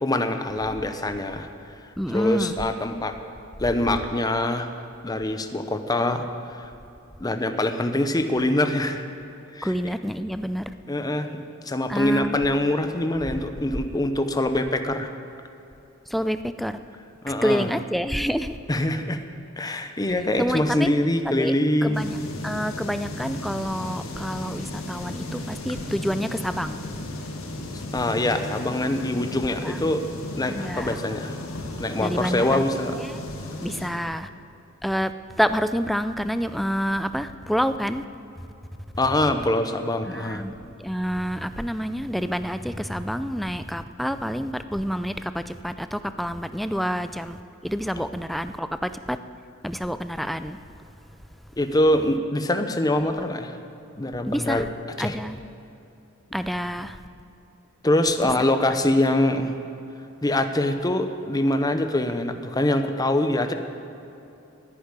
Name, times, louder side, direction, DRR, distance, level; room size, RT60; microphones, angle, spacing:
voice 1, 0.0-1.5 2.1-3.2 3.6-4.7 5.0-6.2 6.5-6.7 7.2-9.0 9.5-9.7 10.9-15.1 17.2-17.7 18.7-19.2 19.6-22.1 27.7-30.1 30.4-31.4 31.8-33.0 39.0-40.4 51.6-53.6 54.0-54.7 55.0-55.2 57.8-59.6 60.2-63.5, left 1 dB, 20° left, 7 dB, 0.8 m, -24 dB
voice 2, 2.0-2.6 9.6-10.7 11.9-12.4 16.1-16.8 17.4-18.6 20.4-20.9 21.4-21.5 21.8-22.2 22.4-26.9 29.5-29.8 30.5-31.0 32.0-32.7 33.0-33.2 33.6-34.3 34.8-35.1 35.4-38.0 40.0-49.2 49.6-50.6 54.3-54.7 55.0-55.4 56.3-57.0, equal, ahead, 11 dB, 0.4 m, -28 dB
sound 1, 21.9-33.9, left 2 dB, 85° left, 1.8 m, -35 dB
10.5 x 10.0 x 9.7 m, 2.8 s
head